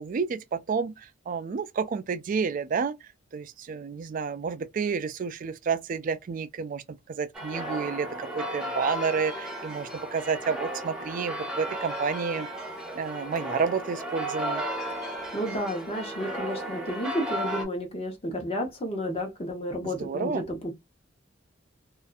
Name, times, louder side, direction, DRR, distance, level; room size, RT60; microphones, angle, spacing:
voice 1, 0.0-12.5 12.9-14.6 20.0-20.4, right 5 dB, 45° right, 0.3 m, -30 dB
sound 1, 7.3-17.7, right 1 dB, 5° right, 0.9 m, -34 dB
voice 2, 15.3-20.7, equal, 30° left, 1.0 m, -31 dB
2.5 x 2.4 x 2.3 m
head